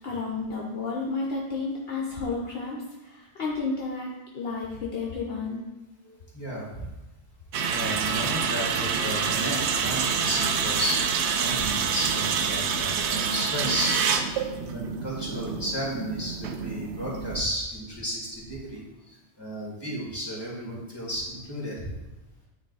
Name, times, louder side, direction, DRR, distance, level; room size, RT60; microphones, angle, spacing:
voice 1, 0.0-5.6, left 4 dB, 60° left, -2 dB, 1.0 m, -32 dB
voice 2, 6.1-6.9 7.7-14.0 14.6-21.9, equal, 20° left, -5 dB, 2.0 m, -33 dB
sound 1, 7.5-17.4, right 6 dB, 75° right, 0.9 m, -27 dB
9.3 x 3.2 x 4.0 m, 1.1 s
omnidirectional pair, 1.2 m